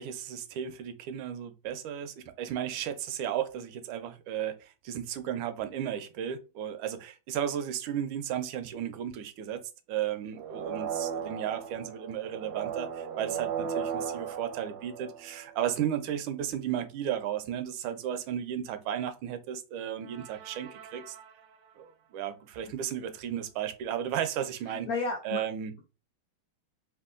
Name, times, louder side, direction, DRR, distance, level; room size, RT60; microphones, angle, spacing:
voice 1, 0.0-21.1 21.8-24.9 25.2-25.7, right 10 dB, 90° right, 1.4 m, -34 dB
sound 1, 10.3-15.7 20.0-21.7, right 7 dB, 75° right, 0.9 m, -37 dB
voice 2, 24.7-25.4, left 4 dB, 80° left, 0.8 m, -33 dB
3.6 x 2.3 x 2.4 m
omnidirectional pair, 2.2 m